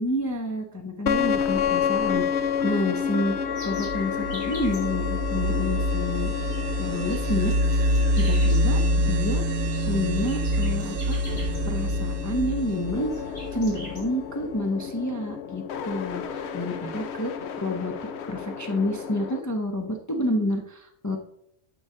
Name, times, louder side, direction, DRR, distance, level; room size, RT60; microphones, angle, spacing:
voice 1, 0.0-3.4 3.6-6.3 6.8-7.5 8.2-9.4 9.8-11.2 11.7-13.1 13.5-17.3 17.6-17.9 18.3-21.2, left 1 dB, 20° left, 2 dB, 0.5 m, -29 dB
sound 1, 1.1-19.4, left 7 dB, 65° left, 0.9 m, -31 dB
sound 2, 3.5-14.1, equal, 80° right, 1.0 m, -26 dB
sound 3, 3.6-4.8 6.4-6.6 6.9-8.6 9.5-9.8 10.2-11.6 12.5-12.7 13.1-14.0, equal, 40° left, 3.7 m, -43 dB
13.0 x 4.7 x 3.7 m, 0.75 s
omnidirectional pair, 1.3 m